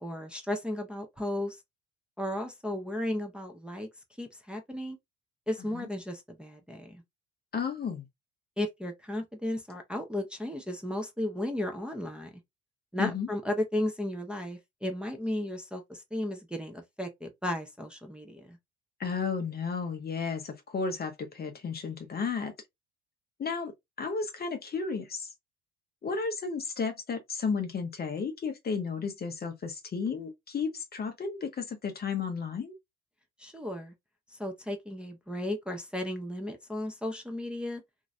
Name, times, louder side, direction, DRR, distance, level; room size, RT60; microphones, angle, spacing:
voice 1, 0.0-1.6 2.2-3.9 4.2-5.0 5.5-7.0 8.6-12.3 12.9-18.6 33.4-33.9 34.3-37.8, left 1 dB, 5° right, 0.7 m, -34 dB
voice 2, 7.5-8.0 13.0-13.3 19.0-22.5 23.4-23.7 24.0-25.3 26.0-32.8, left 5 dB, 30° left, 0.7 m, -33 dB
2.9 x 2.7 x 2.4 m
figure-of-eight pair, 60°, 34 cm